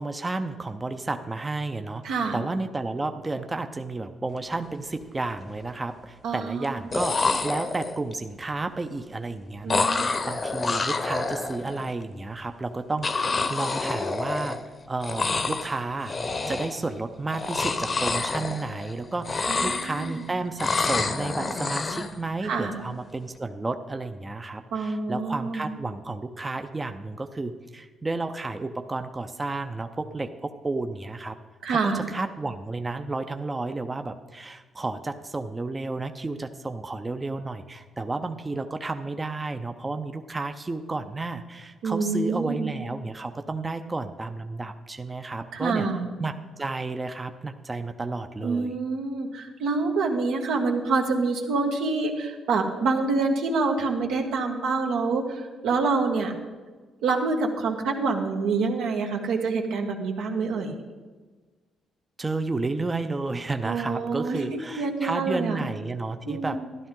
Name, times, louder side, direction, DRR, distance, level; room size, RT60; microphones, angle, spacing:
voice 1, 0.0-14.6 14.9-16.1 16.5-31.4 31.7-45.9 46.2-48.7 62.2-66.6, right 3 dB, 20° right, 7 dB, 0.6 m, -32 dB
voice 2, 2.0-2.4 6.2-6.6 9.6-10.1 19.5-20.2 22.4-22.8 24.7-25.7 31.6-32.1 41.8-42.8 45.5-46.1 48.4-56.3 57.0-60.7 63.6-65.6 66.3-66.7, right 4 dB, 85° right, 1 dB, 1.6 m, -27 dB
sound 1, 4.5-4.7 5.0-5.6 6.6-6.7 6.9-8.1 9.7-11.9 13.0-14.8 15.0-15.8 16.0-16.9 17.3-18.9 19.2-20.2 20.6-22.1, left 3 dB, 35° left, 0.9 m, -28 dB
13.0 x 11.5 x 3.8 m, 1.3 s
cardioid pair, 90°, 0 cm